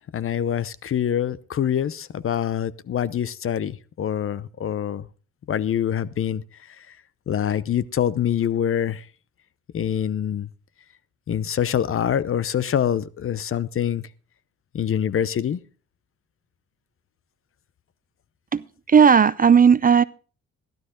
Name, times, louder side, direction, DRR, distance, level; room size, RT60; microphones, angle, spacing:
voice 1, 0.1-5.1 5.5-6.4 7.3-9.0 9.7-10.5 11.3-14.0 14.7-15.6, left 9 dB, 45° left, 0.7 m, -25 dB
voice 2, 18.5-20.0, right 6 dB, 30° right, 0.5 m, -15 dB
15.5 x 12.0 x 3.8 m
cardioid pair, 90°, 30 cm